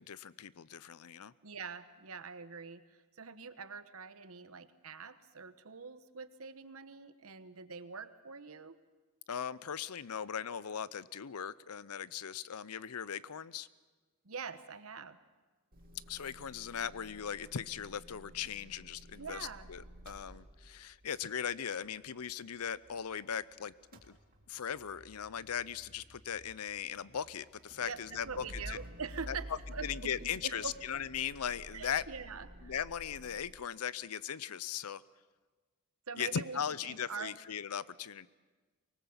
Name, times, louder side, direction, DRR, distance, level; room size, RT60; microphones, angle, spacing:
voice 1, 0.0-1.3 9.3-13.7 16.1-23.7 24.1-24.2 24.5-28.8 29.3-29.4 29.8-32.0 32.6-35.0 36.2-38.3, left 8 dB, 80° left, 19 dB, 0.6 m, -39 dB
voice 2, 1.4-2.8 3.2-8.8 14.2-15.2 19.2-19.7 27.8-29.9 30.1-30.7 31.7-32.7 36.1-37.4, right 5 dB, 70° right, 12 dB, 1.1 m, -44 dB
Motor vehicle (road) / Engine starting / Idling, 15.7-23.4 23.7-33.5, equal, 40° right, 2.4 m, -52 dB
24.0 x 19.5 x 7.1 m, 1.3 s
head